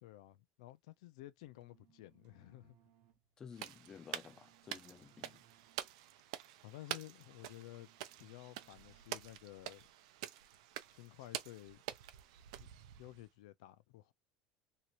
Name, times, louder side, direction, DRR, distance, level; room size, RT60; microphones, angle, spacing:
voice 1, 0.0-2.8 6.6-7.9 8.2-9.9 10.9-11.8 12.6-12.7 13.0-14.1, left 16 dB, 85° left, 0.4 m, -53 dB
sound 1, 1.4-9.4, right 10 dB, 50° right, 0.8 m, -71 dB
voice 2, 3.4-5.4, left 6 dB, 15° left, 0.3 m, -53 dB
sound 2, 3.5-13.3, right 12 dB, 85° right, 0.5 m, -48 dB
2.8 x 2.5 x 2.9 m
cardioid pair, 175°, 3 cm